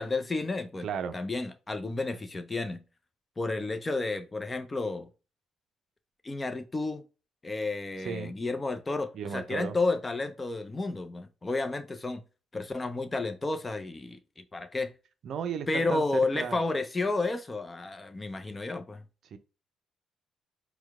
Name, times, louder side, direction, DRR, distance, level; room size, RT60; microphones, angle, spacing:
voice 1, 0.0-2.8 3.4-5.1 6.2-7.0 7.4-12.2 12.5-14.9 15.7-19.0, left 3 dB, 25° left, 0.6 m, -31 dB
voice 2, 0.8-1.1 8.0-8.3 9.1-9.8 15.2-16.6 19.3-19.4, right 7 dB, 60° right, 0.5 m, -34 dB
4.4 x 2.2 x 3.5 m
hypercardioid pair, 45°, 0 cm